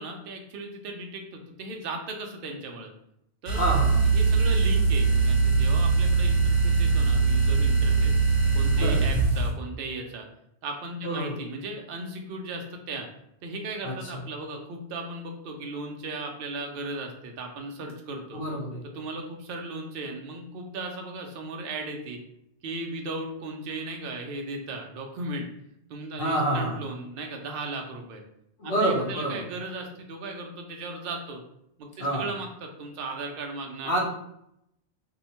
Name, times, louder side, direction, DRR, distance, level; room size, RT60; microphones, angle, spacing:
voice 1, 0.0-2.9 3.4-3.7 4.1-8.2 8.5-10.3 10.6-13.1 13.4-18.4 18.9-22.2 22.6-25.5 25.9-28.2 28.6-31.4 31.8-34.1, right 2 dB, 60° right, 2 dB, 0.7 m, -36 dB
sound 1, 3.4-9.5, right 4 dB, 30° right, 0.9 m, -22 dB
voice 2, 3.5-4.0 8.7-9.0 11.0-11.4 13.8-14.2 18.3-18.9 26.2-26.8 28.6-29.4 32.0-32.3 33.8-34.1, right 1 dB, 60° left, -2 dB, 1.0 m, -27 dB
2.7 x 2.1 x 2.8 m, 0.78 s
omnidirectional pair, 1.2 m